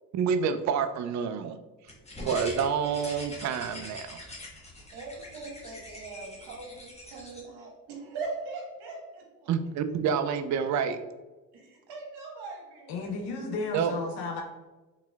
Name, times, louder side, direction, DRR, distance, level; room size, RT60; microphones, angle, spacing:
voice 1, 0.1-1.6 2.2-4.2 9.5-11.0 13.7-13.9, right 6 dB, 45° right, 10 dB, 0.4 m, -28 dB
sound 1, 1.9-7.4, left 1 dB, 15° left, 1.1 m, -43 dB
voice 2, 4.9-9.5 11.5-13.1, right 3 dB, 65° right, -1 dB, 1.4 m, -41 dB
voice 3, 12.9-14.4, left 3 dB, 70° left, 1 dB, 0.8 m, -33 dB
3.9 x 2.9 x 2.3 m, 1.2 s
hypercardioid pair, 65°, 42 cm